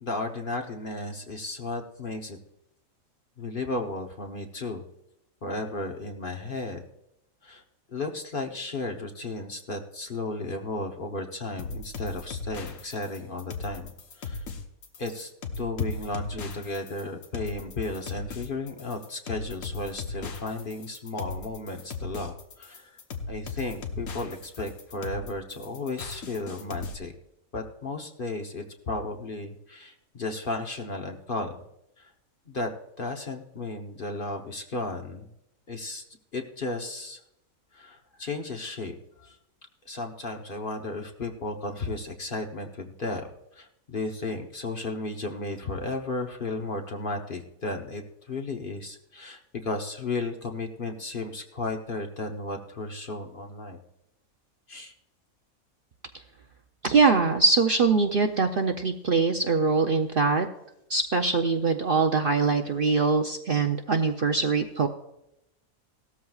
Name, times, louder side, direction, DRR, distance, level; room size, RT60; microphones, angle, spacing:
voice 1, 0.0-2.4 3.4-4.8 5.4-6.8 7.4-7.6 7.9-13.9 14.2-14.4 15.0-15.3 15.6-23.0 23.3-27.1 27.5-31.5 32.0-32.1 32.5-32.7 33.0-35.3 35.7-36.0 36.3-37.2 37.7-39.4 39.9-48.0 48.3-53.8 54.7-54.9, left 2 dB, 45° left, 3 dB, 1.0 m, -34 dB
sound 1, 11.6-26.9, left 4 dB, 70° left, 1.4 m, -37 dB
voice 2, 56.8-60.5 60.9-64.9, right 4 dB, 50° right, 4 dB, 0.7 m, -23 dB
17.5 x 13.5 x 2.4 m, 0.82 s
omnidirectional pair, 1.5 m